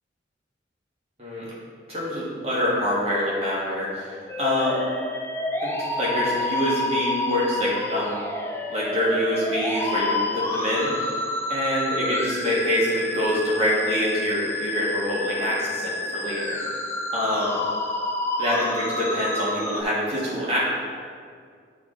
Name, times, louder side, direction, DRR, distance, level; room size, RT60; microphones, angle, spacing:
voice 1, 1.9-4.8 5.6-8.2 8.7-10.9 11.5-16.6 17.1-17.5 18.4-20.6, equal, 35° right, -7 dB, 1.5 m, -25 dB
sound 1, 4.3-19.8, left 2 dB, 15° left, 0.4 m, -29 dB
9.7 x 4.0 x 3.7 m, 2.1 s
head